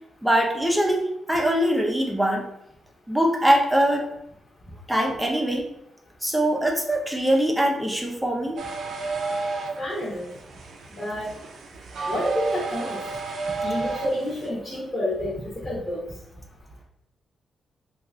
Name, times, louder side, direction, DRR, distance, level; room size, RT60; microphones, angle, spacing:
voice 1, 0.2-2.4 3.1-4.1 4.9-5.7 6.2-8.6, right 1 dB, 5° right, 0 dB, 0.6 m, -22 dB
sound 1, 8.6-14.5, right 3 dB, 65° right, 0.5 m, -31 dB
voice 2, 9.8-10.3 11.0-11.3 12.1-13.0 13.6-16.0, left 1 dB, 30° left, -6 dB, 1.0 m, -29 dB
3.0 x 2.4 x 3.5 m, 0.77 s
wide cardioid pair, 135°, 0 cm